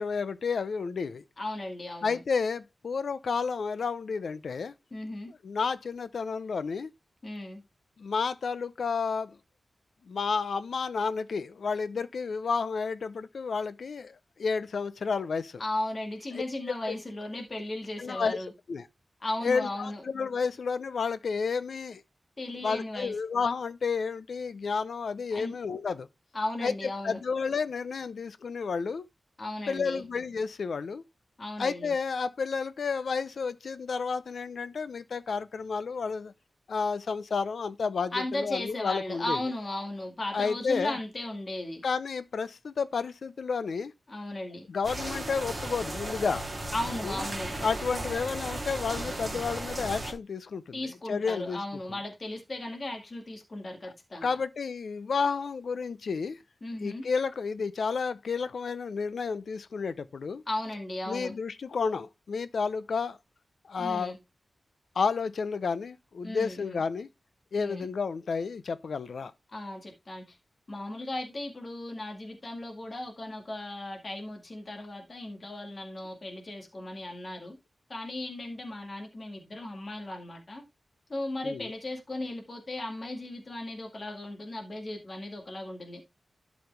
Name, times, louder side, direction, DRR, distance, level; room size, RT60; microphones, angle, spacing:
voice 1, 0.0-1.2 2.0-4.7 5.4-6.9 8.0-9.4 10.1-15.6 16.3-16.9 18.0-18.4 18.7-18.9 19.4-22.0 22.6-26.1 26.6-26.7 27.0-29.0 29.7-31.0 31.6-36.3 36.7-39.4 40.3-41.0 41.8-43.9 44.7-46.4 47.0-47.2 47.6-51.6 54.2-56.4 56.8-60.4 61.1-63.2 63.7-64.2 65.0-67.1 67.5-69.3 81.4-81.7, left 5 dB, 75° left, 0.7 m, -31 dB
voice 2, 1.4-2.2 4.9-5.3 7.2-7.6 15.6-18.5 19.2-20.0 22.4-23.1 25.3-25.5 26.3-27.2 29.4-30.0 31.4-31.9 38.1-41.8 44.1-44.6 46.7-47.5 50.7-54.4 56.6-57.0 60.5-61.3 63.8-64.2 66.2-66.8 67.5-67.9 69.5-70.4 70.7-77.6 77.9-80.6 81.1-86.0, left 1 dB, 35° left, 2.0 m, -36 dB
sound 1, 44.8-50.1, right 1 dB, 20° right, 2.6 m, -35 dB
11.5 x 5.1 x 3.4 m
wide cardioid pair, 135°, 0 cm